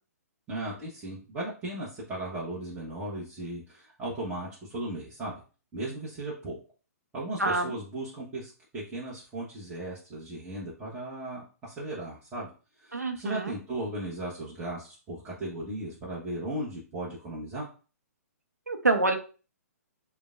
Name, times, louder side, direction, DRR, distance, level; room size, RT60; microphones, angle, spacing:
voice 1, 0.5-5.4 5.7-6.6 7.1-12.5 12.8-17.7, right 1 dB, 15° right, -8 dB, 1.0 m, -36 dB
voice 2, 7.4-7.7 12.9-13.5 18.7-19.2, right 2 dB, 75° right, 5 dB, 0.7 m, -26 dB
6.7 x 2.2 x 2.5 m, 0.36 s
figure-of-eight pair, 120°, 9 cm